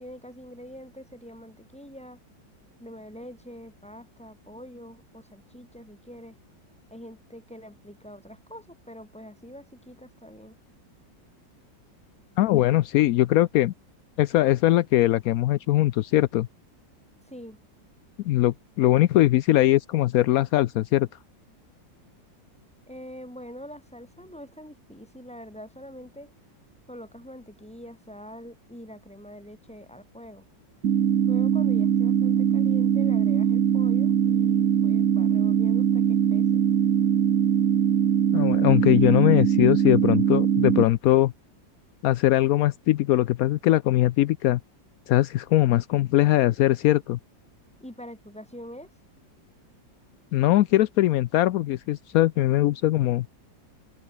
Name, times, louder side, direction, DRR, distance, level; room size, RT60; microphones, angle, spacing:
voice 1, 0.0-2.2 2.8-6.4 6.9-10.6 17.3-17.6 22.9-26.3 26.9-30.4 31.3-36.6 47.8-48.9, equal, 5° left, 6.2 m, -44 dB
voice 2, 12.4-13.7 14.2-16.5 18.2-21.1 38.3-41.3 42.0-44.6 45.1-47.2 50.3-53.3, left 15 dB, 75° left, 0.8 m, -21 dB
sound 1, 30.8-40.8, right 9 dB, 55° right, 1.3 m, -21 dB
open air
omnidirectional pair, 2.0 m